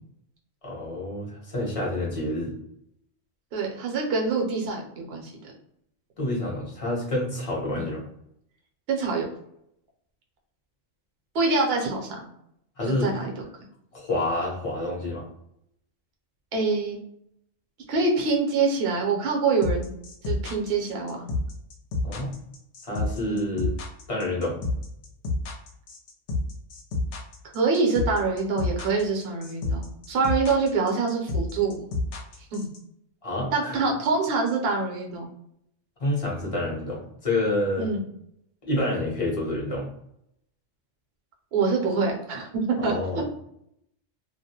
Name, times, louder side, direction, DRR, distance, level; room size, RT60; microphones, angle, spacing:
voice 1, 0.6-2.5 6.2-8.0 12.8-13.1 13.9-15.2 22.0-22.3 22.8-23.7 24.1-24.6 33.2-33.8 36.0-37.9 38.6-39.9 42.8-43.2, left 1 dB, 30° left, -3 dB, 0.7 m, -28 dB
voice 2, 3.5-5.3 7.7-7.8 8.9-9.2 11.3-12.3 13.0-13.3 16.5-17.0 17.9-19.9 20.2-21.3 23.2-23.4 27.5-31.8 32.5-32.7 33.5-35.3 37.8-38.0 41.5-43.2, right 4 dB, 60° right, 0 dB, 0.8 m, -25 dB
sound 1, 19.6-32.8, left 3 dB, 70° left, 0.8 m, -29 dB
2.3 x 2.1 x 2.7 m, 0.75 s
omnidirectional pair, 1.3 m